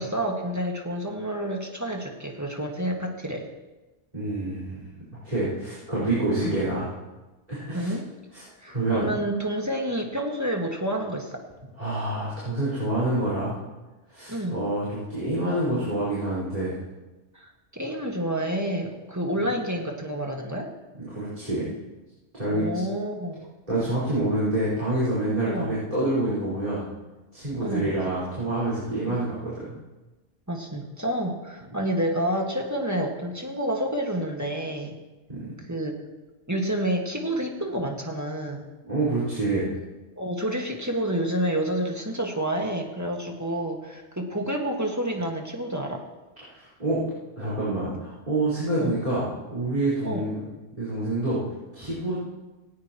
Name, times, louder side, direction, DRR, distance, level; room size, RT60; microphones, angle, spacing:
voice 1, 0.0-3.5 6.4-6.6 7.7-8.0 8.6-11.4 14.3-14.6 17.3-20.7 22.5-23.5 25.4-25.8 27.6-28.0 30.5-34.9 35.7-36.0 36.5-38.7 40.2-46.0 48.8-49.0 50.0-50.3, right 1 dB, 15° right, 1 dB, 1.8 m, -29 dB
voice 2, 4.1-4.8 5.2-6.9 7.5-7.9 8.3-9.1 11.8-13.6 14.1-16.8 19.4-19.5 21.0-21.7 22.3-22.7 23.7-26.8 27.3-29.8 35.4-35.5 38.8-39.7 46.5-47.0 47.4-50.4 50.8-51.4 51.7-52.2, right 2 dB, 35° right, -8 dB, 5.1 m, -27 dB
18.5 x 18.0 x 3.1 m, 1.2 s
omnidirectional pair, 1.2 m